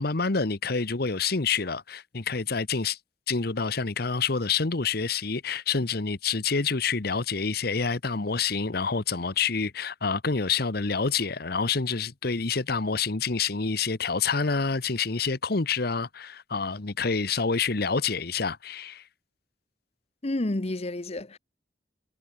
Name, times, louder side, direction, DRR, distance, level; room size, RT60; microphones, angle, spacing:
voice 1, 0.0-3.0 3.3-19.0, left 5 dB, 60° left, 1.1 m, -27 dB
voice 2, 20.2-21.4, left 1 dB, 35° left, 0.9 m, -30 dB
head